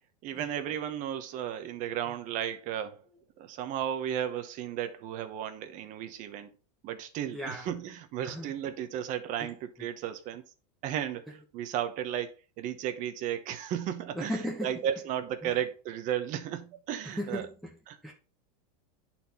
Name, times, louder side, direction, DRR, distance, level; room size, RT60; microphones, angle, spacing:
voice 1, 0.2-3.0 3.4-6.5 6.8-10.4 10.8-11.3 11.5-14.3 14.6-17.5 17.9-18.0, right 10 dB, 40° right, 1.0 m, -34 dB
voice 2, 7.3-7.7 8.2-8.5 9.4-9.5 14.1-14.7 15.4-15.6 17.0-17.8 18.0-18.1, equal, ahead, 1.1 m, -36 dB
10.0 x 4.4 x 4.2 m
supercardioid pair, 150°, 21 cm